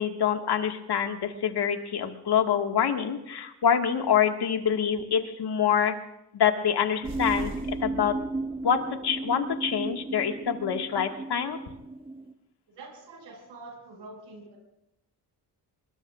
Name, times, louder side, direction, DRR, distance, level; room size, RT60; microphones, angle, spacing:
voice 1, 0.0-5.9 6.3-7.5 7.8-8.2 8.6-11.6, left 8 dB, 65° left, 5 dB, 1.9 m, -26 dB
sound 1, 7.0-12.3, right 2 dB, 10° right, 1.6 m, -35 dB
sound 2, 7.0-8.9, right 1 dB, 50° right, 3.7 m, -42 dB
voice 2, 12.7-14.6, right 2 dB, 80° right, 1 dB, 6.1 m, -45 dB
24.0 x 21.5 x 2.5 m, 0.84 s
supercardioid pair, 60°, 43 cm